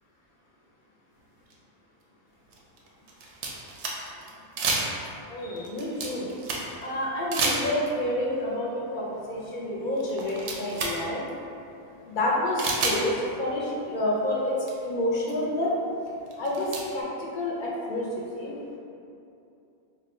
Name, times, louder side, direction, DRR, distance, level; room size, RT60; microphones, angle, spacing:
sound 1, 1.5-1.6 2.5-4.3 4.6-5.2 5.6-6.8 7.3-8.0 9.4-9.5 10.0-11.0 11.3-11.4 12.6-13.0 14.3-14.4 14.7-14.8 15.3-15.4 16.3-16.8, right 3 dB, 85° right, 0.9 m, -29 dB
voice 1, 5.3-6.3 6.8-11.2 12.0-14.5 14.8-15.7 16.4-18.5, left 1 dB, 55° left, -4 dB, 0.6 m, -29 dB
2.6 x 2.1 x 4.0 m, 2.8 s
omnidirectional pair, 1.1 m